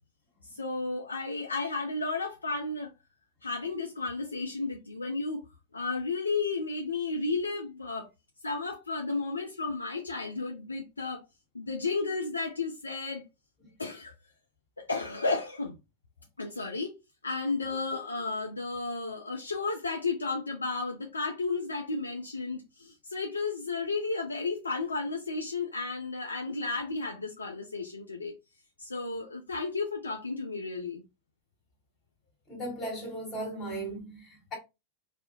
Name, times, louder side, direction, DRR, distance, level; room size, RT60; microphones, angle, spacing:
voice 1, 0.5-2.9 3.4-5.4 5.7-8.1 8.4-11.2 11.5-13.2 13.8-14.1 14.8-15.8 16.4-17.0 17.2-28.4 28.8-31.0, left 3 dB, 80° left, 0.3 m, -33 dB
voice 2, 32.5-34.5, right 1 dB, 30° left, 1.2 m, -37 dB
2.3 x 2.0 x 2.8 m
figure-of-eight pair, 90°, 0 cm